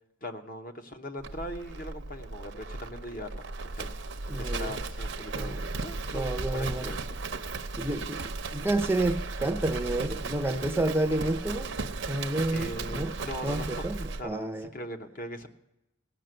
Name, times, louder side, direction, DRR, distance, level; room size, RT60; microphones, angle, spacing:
voice 1, 0.2-3.5 3.7-7.2 7.9-8.0 12.5-13.8 14.2-15.5, equal, 45° left, 0.9 m, -40 dB
Livestock farm animals working animals, 1.2-14.2, right 3 dB, 70° right, 0.6 m, -36 dB
voice 2, 4.3-4.7 5.3-5.6 6.1-6.9 7.8-8.2 8.5-11.7 12.1-13.1 13.4-14.7, right 1 dB, 10° right, 0.5 m, -30 dB
17.5 x 5.9 x 7.7 m
head